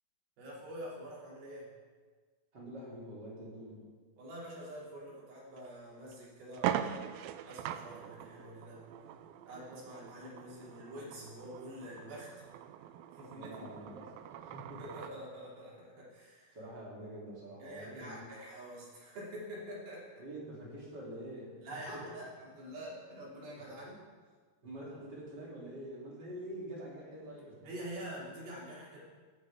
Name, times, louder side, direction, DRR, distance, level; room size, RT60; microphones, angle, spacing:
voice 1, 0.4-1.7 4.2-7.0 7.5-8.9 9.5-12.3 13.1-13.6 14.8-16.6 17.6-20.1 21.6-24.0 27.6-29.0, equal, 65° right, -6 dB, 5.1 m, -46 dB
voice 2, 2.5-3.8 13.3-15.0 16.5-18.2 20.2-22.2 24.6-27.6, right 1 dB, 25° right, -6 dB, 3.5 m, -46 dB
sound 1, 5.6-5.7 6.1-6.2 6.5-15.2, right 10 dB, 85° right, 2.0 m, -42 dB
17.0 x 9.7 x 3.8 m, 1.5 s
omnidirectional pair, 4.6 m